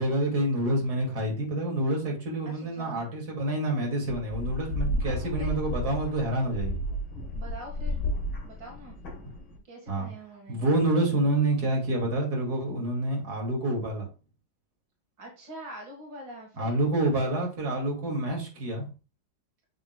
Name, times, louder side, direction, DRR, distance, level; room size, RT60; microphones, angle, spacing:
voice 1, 0.0-6.8 9.9-10.1 10.5-14.1 16.6-18.8, right 1 dB, 60° right, -1 dB, 2.9 m, -27 dB
voice 2, 2.4-3.1 5.0-5.6 7.3-8.0 8.4-9.0 9.6-10.6 15.2-16.8, right 1 dB, 85° right, 0 dB, 2.5 m, -44 dB
sound 1, 4.1-9.6, equal, 70° left, 2.3 m, -32 dB
8.8 x 6.4 x 2.3 m, 0.32 s
omnidirectional pair, 1.9 m